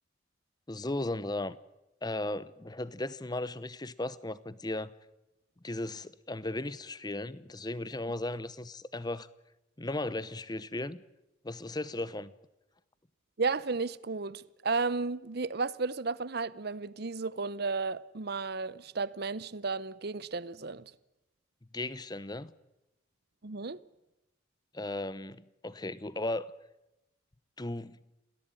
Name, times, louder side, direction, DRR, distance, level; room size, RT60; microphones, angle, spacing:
voice 1, 0.7-1.6 2.0-4.9 5.6-9.3 9.8-11.0 11.4-12.3 21.7-22.5 24.7-26.5 27.6-28.0, left 2 dB, 20° left, 0.8 m, -36 dB
voice 2, 13.4-20.9 23.4-23.8, right 4 dB, 50° right, 0.8 m, -33 dB
28.0 x 17.5 x 9.1 m
head